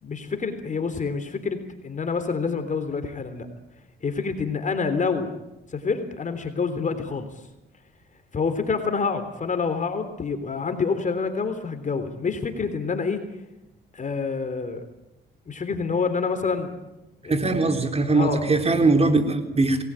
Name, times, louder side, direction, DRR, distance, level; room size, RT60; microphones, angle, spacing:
voice 1, 0.0-3.5 4.0-5.3 5.7-7.3 8.3-13.2 13.9-14.8 15.5-16.7 17.2-17.4 18.1-18.5, left 5 dB, 40° left, 8 dB, 3.4 m, -27 dB
voice 2, 17.3-19.8, right 3 dB, 30° right, 6 dB, 3.9 m, -21 dB
28.5 x 20.0 x 8.9 m, 0.96 s
cardioid pair, 90°, 20 cm